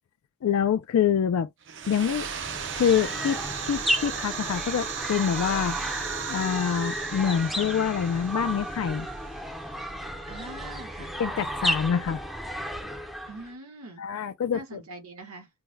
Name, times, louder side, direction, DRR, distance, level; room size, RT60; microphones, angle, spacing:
voice 1, 0.4-1.5 1.9-2.3 2.7-3.4 3.7-5.8 6.3-9.1 11.2-12.2 14.0-14.8, left 8 dB, 75° left, 0.3 m, -26 dB
sound 1, 1.6-10.2, right 7 dB, 60° right, 0.6 m, -36 dB
sound 2, 2.0-13.5, equal, ahead, 0.5 m, -33 dB
voice 2, 10.3-11.2 13.3-14.0 14.5-15.5, right 2 dB, 85° right, 1.2 m, -43 dB
3.4 x 2.1 x 3.1 m
head